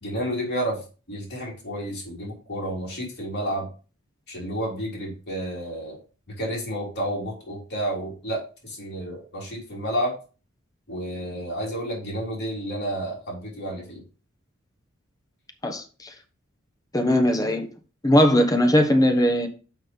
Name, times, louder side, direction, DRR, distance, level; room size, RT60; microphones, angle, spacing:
voice 1, 0.0-0.8 1.1-3.7 4.3-6.0 6.3-10.1 10.9-14.0, right 1 dB, 50° left, 3.5 m, -30 dB
voice 2, 15.6-16.1 16.9-17.7 18.0-19.5, equal, 15° left, 1.1 m, -19 dB
6.3 x 5.6 x 5.4 m
head